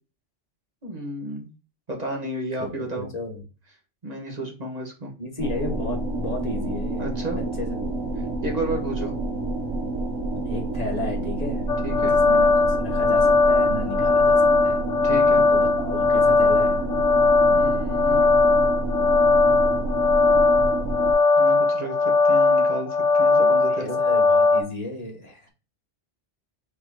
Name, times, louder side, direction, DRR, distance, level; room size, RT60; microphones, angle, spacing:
voice 1, 0.8-1.5 1.9-3.1 4.0-5.1 7.0-7.4 8.4-9.1 11.8-12.1 15.0-15.5 17.5-18.3 21.4-24.0, right 1 dB, 35° right, 0 dB, 1.4 m, -32 dB
voice 2, 2.6-3.4 5.2-7.0 7.3-7.9 10.5-11.6 12.0-14.8 15.5-16.8 23.5-25.5, left 1 dB, 35° left, 0 dB, 1.5 m, -33 dB
sound 1, 5.4-21.1, right 2 dB, 80° right, 1.2 m, -28 dB
sound 2, 11.7-24.6, left 3 dB, 90° left, 1.1 m, -19 dB
4.5 x 4.0 x 2.9 m, 0.32 s
omnidirectional pair, 1.2 m